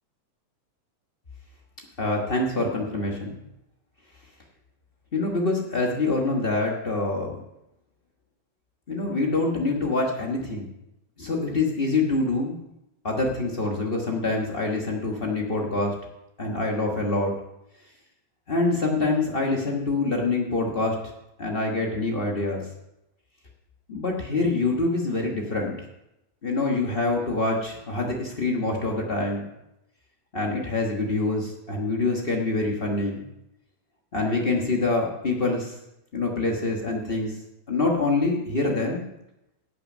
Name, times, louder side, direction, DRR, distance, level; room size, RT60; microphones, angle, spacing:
voice 1, 2.0-3.4 5.1-7.4 8.9-10.7 11.2-12.6 13.0-15.9 16.4-17.3 18.5-21.0 21.4-22.6 23.9-25.8 26.4-29.5 30.3-33.2 34.1-35.7 36.1-37.3 37.7-39.0, left 2 dB, 90° left, -1 dB, 0.5 m, -25 dB
16.5 x 6.1 x 5.4 m, 0.89 s
omnidirectional pair, 3.3 m